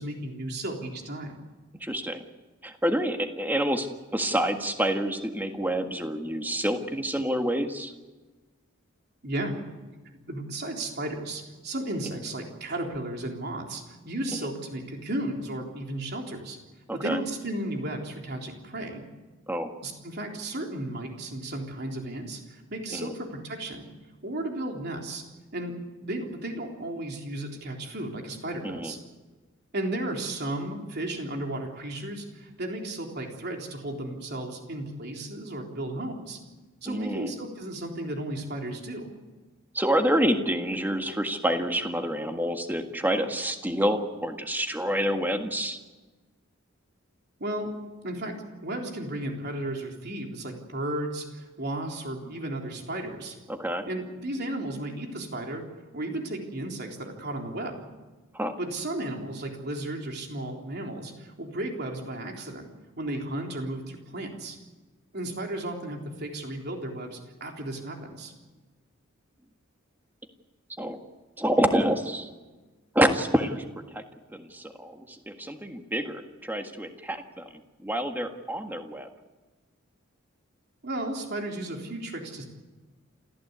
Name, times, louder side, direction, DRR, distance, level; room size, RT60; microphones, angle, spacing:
voice 1, 0.0-1.4 9.2-9.5 10.3-16.6 16.9-19.0 19.8-23.9 24.2-25.2 25.5-25.8 26.0-29.0 29.7-36.4 36.8-39.1 47.4-47.7 48.0-53.4 53.9-55.6 55.9-57.9 58.6-62.7 63.0-64.6 65.1-68.3 80.8-82.4, right 1 dB, 55° right, 2 dB, 3.8 m, -34 dB
voice 2, 1.8-2.2 2.6-3.9 4.1-7.9 16.9-17.2 19.5-19.7 22.9-23.1 28.6-28.9 36.8-37.3 39.7-45.8 53.5-53.9 58.3-58.5 70.8-71.0 71.4-72.3 72.9-73.6 73.9-74.0 74.3-77.5 77.8-79.1, equal, 10° right, 5 dB, 1.7 m, -27 dB
28.0 x 15.0 x 8.2 m, 1.2 s
head